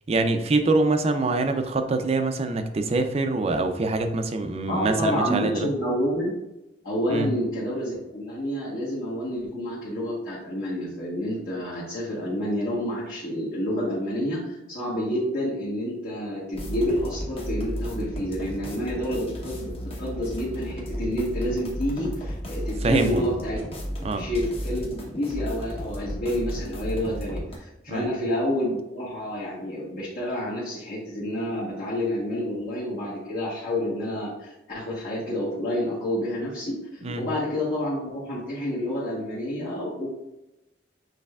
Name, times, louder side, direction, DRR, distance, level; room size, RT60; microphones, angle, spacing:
voice 1, 0.1-5.7 7.1-7.3 22.8-23.3 24.0-24.2 27.9-28.1 37.0-37.3, right 3 dB, 35° right, 7 dB, 0.4 m, -24 dB
voice 2, 4.7-6.3 6.8-23.6 24.2-40.1, equal, 55° left, -9 dB, 1.1 m, -29 dB
sound 1, 16.5-27.6, equal, 35° left, 0.8 m, -33 dB
6.5 x 3.2 x 2.3 m, 0.95 s
head